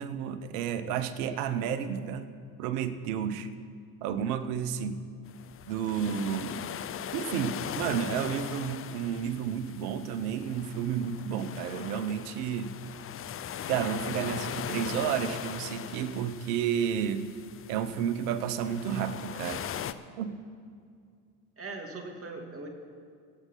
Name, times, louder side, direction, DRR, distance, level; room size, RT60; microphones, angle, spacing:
voice 1, 0.0-2.3 2.6-3.5 4.0-5.0 5.7-6.7 7.1-12.7 13.7-17.2 17.7-19.6 20.2-20.3, right 8 dB, 75° right, 11 dB, 1.1 m, -31 dB
sound 1, 5.3-19.9, left 9 dB, 30° left, 0.6 m, -40 dB
voice 2, 21.6-22.7, right 3 dB, 30° right, 2 dB, 2.7 m, -41 dB
25.0 x 8.5 x 4.0 m, 2.2 s
hypercardioid pair, 70°, 46 cm